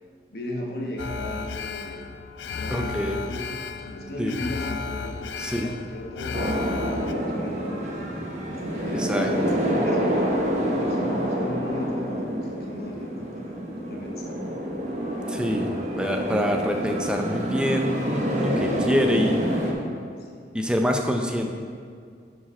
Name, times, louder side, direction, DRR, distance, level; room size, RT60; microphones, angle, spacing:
voice 1, 0.3-2.0 2.4-3.5 3.8-6.4 6.9-10.3 10.5-13.6 13.8-14.6 19.6-20.5, left 1 dB, 55° left, 0 dB, 1.1 m, -36 dB
Alarm, 1.0-7.1, left 5 dB, 80° left, 0.4 m, -34 dB
voice 2, 2.7-3.2 4.2-4.4 5.4-5.7 8.9-9.6 15.3-19.4 20.5-21.6, equal, 5° right, 3 dB, 0.5 m, -26 dB
sound 1, 6.3-19.7, equal, 40° right, 0.9 m, -27 dB
10.0 x 4.8 x 4.2 m, 2.2 s
head